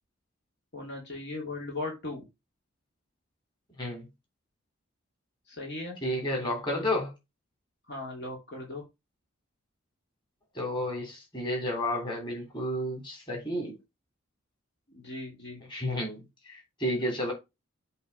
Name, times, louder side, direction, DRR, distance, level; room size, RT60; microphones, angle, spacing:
voice 1, 0.7-2.2 5.5-6.0 7.9-8.8 14.9-15.6, left 2 dB, 55° left, 2.6 m, -38 dB
voice 2, 6.0-7.1 10.5-13.8 15.7-17.3, left 1 dB, 20° left, 3.4 m, -31 dB
7.8 x 3.4 x 5.6 m
head